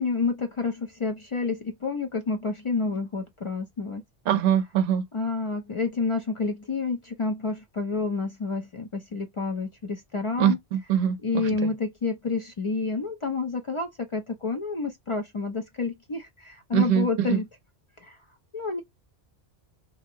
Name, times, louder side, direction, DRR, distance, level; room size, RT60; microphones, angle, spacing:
voice 1, 0.0-4.0 5.1-10.6 11.2-17.5 18.0-18.2 18.5-18.8, left 4 dB, 50° left, 0.3 m, -29 dB
voice 2, 4.3-5.0 10.4-11.7 16.7-17.4, right 9 dB, 65° right, 0.7 m, -24 dB
2.8 x 2.6 x 2.6 m
omnidirectional pair, 1.1 m